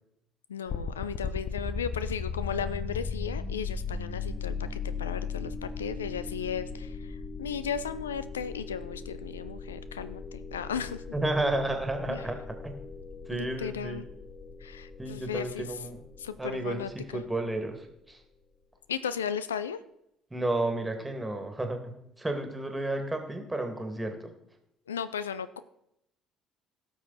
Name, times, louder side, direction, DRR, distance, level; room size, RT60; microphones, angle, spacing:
voice 1, 0.5-11.0 12.1-12.2 13.3-14.0 14.6-15.7 16.2-17.2 18.9-19.8 24.9-25.6, left 7 dB, 80° left, 14 dB, 0.3 m, -35 dB
sound 1, 0.7-17.6, left 5 dB, 45° left, 0.8 m, -38 dB
voice 2, 11.1-12.8 13.3-14.0 15.0-16.0 16.4-18.2 20.3-24.3, right 2 dB, 10° right, 5 dB, 2.2 m, -32 dB
17.0 x 6.2 x 4.1 m, 0.80 s
figure-of-eight pair, 50°, 0 cm